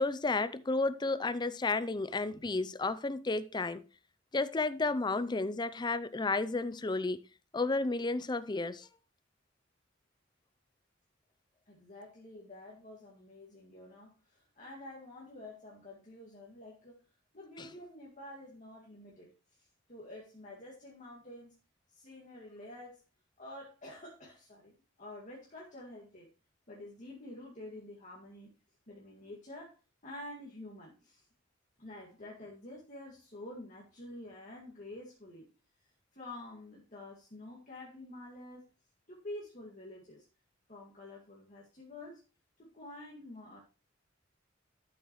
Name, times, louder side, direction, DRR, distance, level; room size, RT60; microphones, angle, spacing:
voice 1, 0.0-3.8 4.3-7.2 7.5-8.9 17.6-17.7, left 3 dB, 20° left, 0.5 m, -32 dB
voice 2, 11.7-17.0 17.3-19.3 19.6-21.6 21.9-23.0 23.4-26.3 26.7-28.5 28.9-29.8 30.0-31.2 31.8-35.5 36.1-38.7 39.1-40.3 40.7-42.2 42.6-43.6, left 1 dB, 40° left, 2.1 m, -48 dB
12.5 x 7.1 x 3.1 m
head